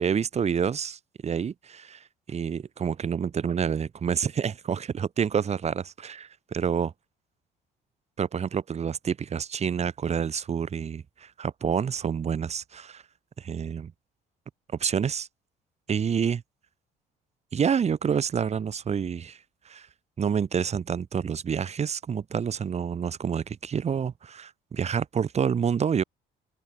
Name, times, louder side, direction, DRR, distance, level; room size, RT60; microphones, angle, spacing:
voice 1, 0.0-6.9 8.2-13.0 13.4-13.9 14.8-15.3 15.9-16.4 17.5-19.4 19.7-19.9 20.2-26.0, right 7 dB, 40° right, 5.3 m, -28 dB
open air
cardioid pair, 110°, 17 cm